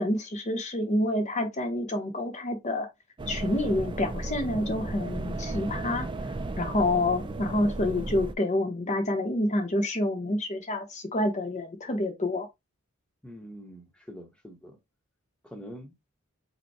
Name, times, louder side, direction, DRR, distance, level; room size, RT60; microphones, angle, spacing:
voice 1, 0.0-2.9 3.3-12.5, left 1 dB, 30° left, 0.8 m, -28 dB
sound 1, 3.2-8.3, right 2 dB, 20° right, 0.4 m, -34 dB
voice 2, 13.2-14.8 15.4-15.9, equal, 5° left, 0.9 m, -44 dB
5.1 x 2.2 x 4.7 m
head